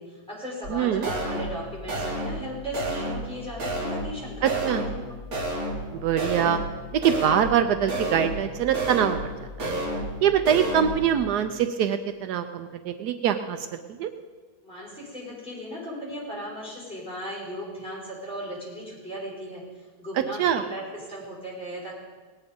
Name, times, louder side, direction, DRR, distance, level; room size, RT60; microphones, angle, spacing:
voice 1, 0.0-5.2 14.6-21.9, equal, 5° left, -7 dB, 5.5 m, -37 dB
sound 1, 0.6-0.7 1.0-1.6 1.9-2.4 2.7-3.3 3.6-4.2 4.4-5.0 5.3-5.9 6.2-6.7 7.0-7.6 7.9-8.5 8.7-9.3 9.6-10.2 10.4-11.0, right 1 dB, 60° right, 2.3 m, -30 dB
voice 2, 0.7-1.1 4.4-4.8 6.0-6.6 6.9-9.2 9.6-9.8 10.2-13.7 14.0-14.1 20.4-20.6, right 9 dB, 80° right, 8 dB, 1.2 m, -23 dB
19.0 x 9.4 x 5.3 m, 1.4 s
omnidirectional pair, 1.7 m